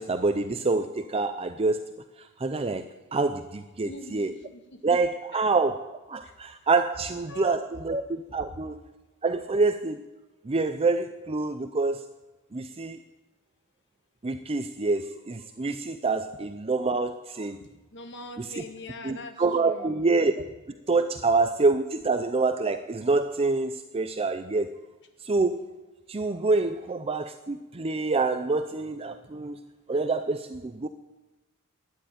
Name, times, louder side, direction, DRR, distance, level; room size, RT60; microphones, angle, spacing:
voice 1, 0.0-1.8 2.2-2.9 3.1-4.3 4.8-8.8 9.2-10.0 10.4-12.0 12.5-13.0 14.2-17.6 18.4-18.6 19.0-20.3 20.9-24.7 25.2-25.7 26.1-29.6 29.9-30.9, right 3 dB, 25° right, 10 dB, 0.5 m, -26 dB
voice 2, 3.8-4.8 5.3-5.4 6.2-6.4 7.3-8.0 17.6-20.1, left 2 dB, 55° left, 6 dB, 1.7 m, -43 dB
13.0 x 10.0 x 9.1 m, 1.1 s
head